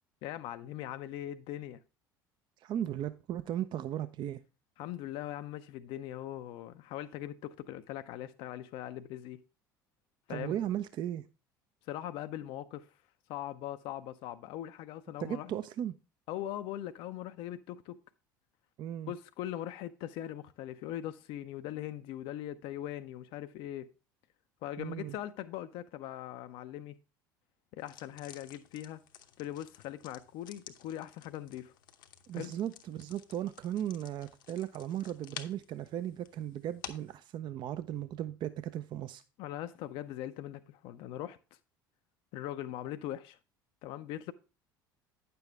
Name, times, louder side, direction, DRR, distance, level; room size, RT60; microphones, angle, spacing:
voice 1, 0.2-1.8 4.8-9.4 10.3-10.6 11.8-12.9 13.3-15.5 16.3-18.0 19.1-23.9 24.6-27.0 27.7-29.0 29.4-31.7 32.3-32.5 39.4-41.4 42.3-43.4 43.8-44.3, left 12 dB, 55° left, 0.5 m, -41 dB
voice 2, 2.6-4.4 10.3-11.2 15.2-15.9 18.8-19.1 24.8-25.2 32.3-39.2, right 11 dB, 45° right, 0.5 m, -36 dB
sound 1, 27.8-37.2, left 10 dB, 70° left, 0.9 m, -52 dB
9.6 x 6.9 x 3.3 m
figure-of-eight pair, 65°, 11 cm